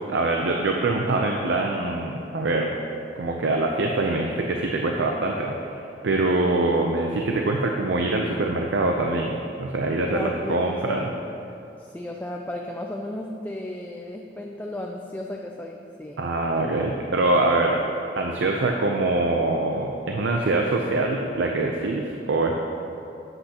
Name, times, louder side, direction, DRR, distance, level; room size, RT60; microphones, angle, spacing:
voice 1, 0.1-2.8 3.2-11.1 16.2-17.8 18.2-22.5, right 2 dB, 90° right, 1 dB, 0.6 m, -24 dB
voice 2, 10.1-11.1 11.8-16.2, left 1 dB, 10° left, 1 dB, 0.4 m, -34 dB
11.5 x 7.9 x 2.9 m, 2.7 s
head